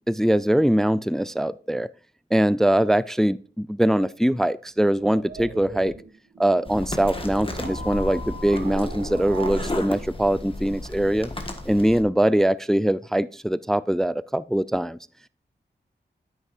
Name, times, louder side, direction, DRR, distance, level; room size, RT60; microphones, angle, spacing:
voice 1, 0.1-1.9 2.3-5.9 6.4-11.3 11.7-15.0, right 1 dB, ahead, 0.3 m, -22 dB
sound 1, 4.6-9.7, right 3 dB, 85° right, 1.3 m, -38 dB
sound 2, 6.7-12.0, left 1 dB, 30° left, 1.5 m, -33 dB
9.7 x 8.3 x 2.5 m
cardioid pair, 50°, 18 cm